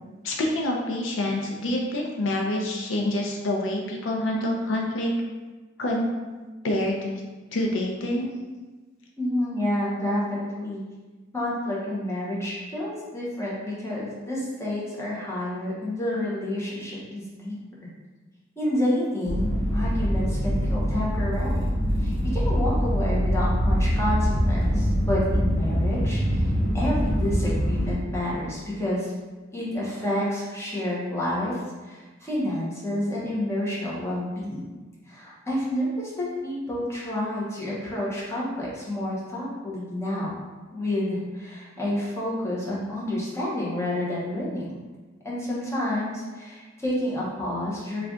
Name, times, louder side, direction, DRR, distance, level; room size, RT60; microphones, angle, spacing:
voice 1, 0.2-5.1 5.8-6.1 6.6-7.2 7.5-8.3, left 1 dB, 70° left, 0 dB, 0.5 m, -27 dB
voice 2, 9.2-10.8 11.3-17.9 18.6-21.7 22.0-29.1 29.5-34.7 35.1-40.3 40.7-44.7 45.2-48.1, left 1 dB, 15° left, -7 dB, 0.9 m, -29 dB
sound 1, 19.2-27.9, equal, 50° left, 1.0 m, -24 dB
3.3 x 2.4 x 3.7 m, 1.3 s
head